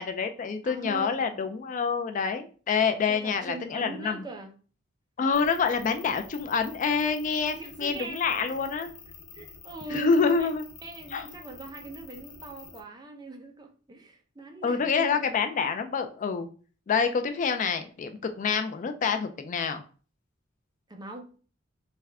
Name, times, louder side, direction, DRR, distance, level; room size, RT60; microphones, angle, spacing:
voice 1, 0.0-4.2 5.2-8.9 9.9-10.6 11.1-11.3 14.6-16.5 16.9-19.8, left 5 dB, 40° left, 0.3 m, -27 dB
voice 2, 0.6-1.4 3.1-4.5 7.5-8.2 8.5-8.6 9.3-10.5 10.8-15.2 20.9-21.3, right 3 dB, 20° right, 0.6 m, -41 dB
sound 1, 5.3-12.8, left 5 dB, 85° left, 0.7 m, -48 dB
3.5 x 3.2 x 3.4 m
head